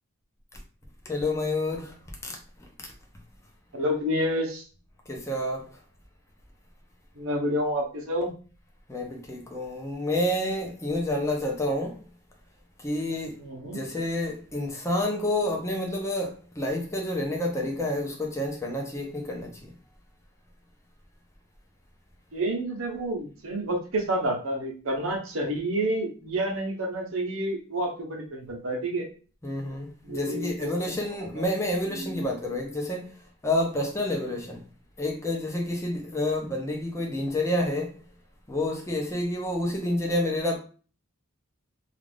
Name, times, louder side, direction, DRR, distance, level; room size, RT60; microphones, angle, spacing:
voice 1, 1.1-1.9 2.2-2.3 5.1-5.7 8.9-12.0 12.8-13.4 13.6-19.6 29.4-33.1 33.4-34.6 35.0-37.9 38.5-40.6, left 1 dB, 15° left, 0.6 m, -29 dB
voice 2, 3.7-4.6 7.2-8.3 13.4-13.8 22.3-29.0 30.1-30.9 31.3-31.5 31.9-32.3, right 1 dB, 65° right, 0.8 m, -29 dB
2.4 x 2.4 x 3.2 m
head